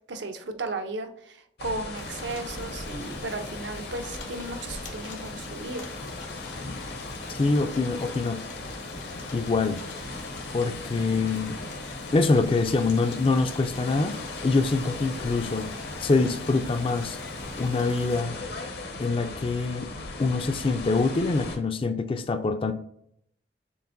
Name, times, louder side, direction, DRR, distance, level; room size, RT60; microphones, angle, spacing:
voice 1, 0.1-5.9, right 2 dB, 70° right, 6 dB, 0.6 m, -35 dB
sound 1, 1.6-21.6, left 3 dB, 60° left, 0.7 m, -38 dB
sound 2, 1.9-18.2, left 2 dB, 90° left, 1.2 m, -43 dB
voice 2, 7.3-8.4 9.3-9.8 10.5-11.6 12.1-14.2 14.4-15.7 16.0-17.2 17.6-18.3 19.0-19.9 20.2-22.7, left 3 dB, 30° left, 9 dB, 0.4 m, -25 dB
6.9 x 2.5 x 2.5 m, 0.71 s
head